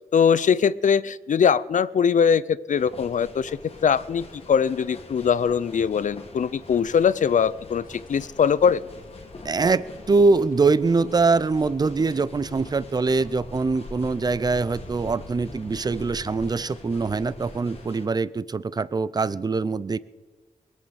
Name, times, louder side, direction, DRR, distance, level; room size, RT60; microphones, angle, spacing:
voice 1, 0.1-8.8, left 7 dB, 65° left, 18 dB, 0.5 m, -21 dB
sound 1, 2.8-18.1, left 2 dB, 45° left, 2.1 m, -43 dB
sound 2, 3.6-17.9, left 3 dB, 90° left, 1.7 m, -51 dB
voice 2, 9.4-20.0, right 4 dB, 30° right, 18 dB, 0.5 m, -23 dB
22.0 x 8.4 x 6.4 m, 1.3 s
wide cardioid pair, 115°, 14 cm